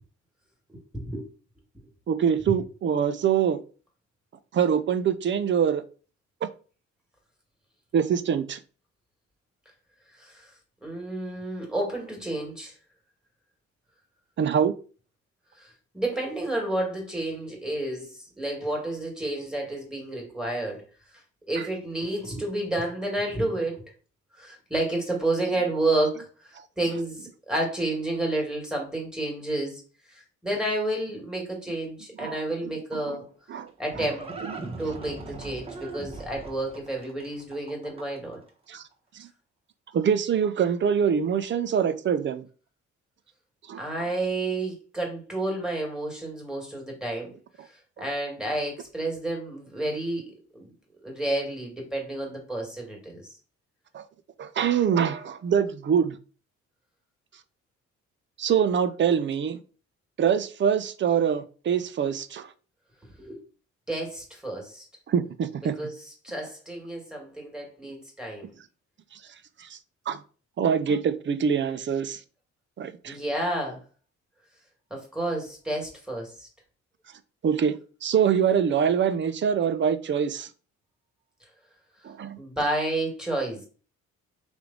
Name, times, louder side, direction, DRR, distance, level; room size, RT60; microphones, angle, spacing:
voice 1, 0.7-1.2 10.2-10.5 10.8-12.8 15.5-20.8 21.5-23.8 24.3-29.8 30.1-33.2 33.8-34.5 34.8-38.4 43.8-47.3 48.0-50.7 51.0-53.3 63.2-63.4 63.9-64.9 65.8-66.0 66.2-68.5 73.1-73.8 74.9-76.5 82.4-83.6, right 1 dB, ahead, 1.8 m, -30 dB
voice 2, 2.1-3.6 4.5-5.8 6.4-6.5 7.9-8.6 14.4-14.7 21.6-21.7 32.2-32.4 32.9-33.2 33.5-33.7 34.5-34.7 38.7-38.8 39.1-39.3 39.9-42.5 43.7-43.8 48.0-48.1 53.9-54.0 54.4-56.2 58.4-59.6 60.2-62.5 65.1-65.8 69.6-69.8 70.1-70.2 70.6-72.2 72.8-73.2 77.4-77.8 78.0-80.5 82.0-82.4, right 7 dB, 40° right, 0.5 m, -24 dB
Livestock farm animals working animals, 33.3-38.3, right 3 dB, 20° right, 1.0 m, -40 dB
3.3 x 3.1 x 3.9 m
cardioid pair, 90°, 30 cm